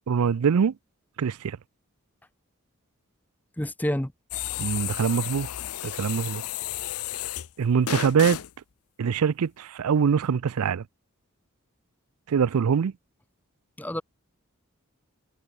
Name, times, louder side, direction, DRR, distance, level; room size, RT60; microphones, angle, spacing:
voice 1, 0.1-0.7 1.2-1.6 4.6-5.5 5.8-6.4 7.6-8.4 9.0-10.8 12.3-12.9, right 6 dB, 85° right, 0.4 m, -23 dB
voice 2, 3.6-4.1 13.8-14.0, left 1 dB, 10° left, 0.7 m, -28 dB
sound 1, 4.3-7.5 7.9-8.5, left 12 dB, 85° left, 0.5 m, -32 dB
head